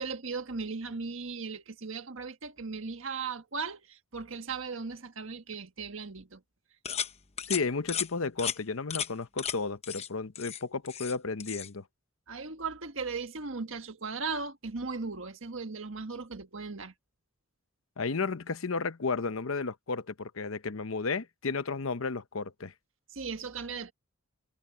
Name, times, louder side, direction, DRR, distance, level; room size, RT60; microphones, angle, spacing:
voice 1, 0.0-6.4 12.3-16.9 23.1-23.9, right 4 dB, 65° right, 1.6 m, -37 dB
sound 1, 6.9-7.1 7.4-7.6 7.9-8.1 8.4-8.6 8.9-9.1 9.4-9.6 9.8-10.1 10.4-11.2 11.4-11.7, left 8 dB, 30° left, 0.9 m, -34 dB
voice 2, 7.5-11.8 18.0-22.7, left 4 dB, 75° left, 0.8 m, -33 dB
head